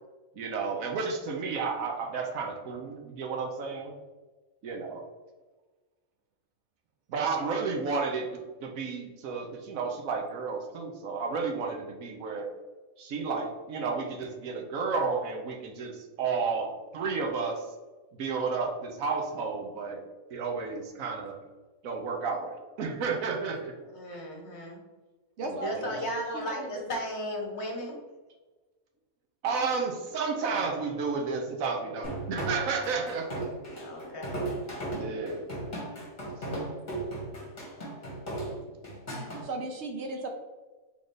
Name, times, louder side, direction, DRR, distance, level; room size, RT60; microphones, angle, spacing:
voice 1, 0.3-3.9 4.6-5.0 7.1-8.3 8.6-12.5 13.0-17.7 18.1-20.0 20.3-21.3 21.8-23.7 25.4-26.0 29.4-33.3 34.9-35.4, right 4 dB, 85° right, 2 dB, 1.2 m, -32 dB
voice 2, 23.9-24.8 25.6-28.0 33.7-34.5, equal, 55° left, 1 dB, 1.2 m, -35 dB
voice 3, 25.4-26.7 38.4-38.8 39.4-40.3, right 2 dB, 65° right, 3 dB, 0.8 m, -37 dB
sound 1, 32.0-39.4, right 2 dB, 35° left, 1.5 m, -36 dB
3.9 x 3.7 x 3.2 m, 1.3 s
omnidirectional pair, 1.4 m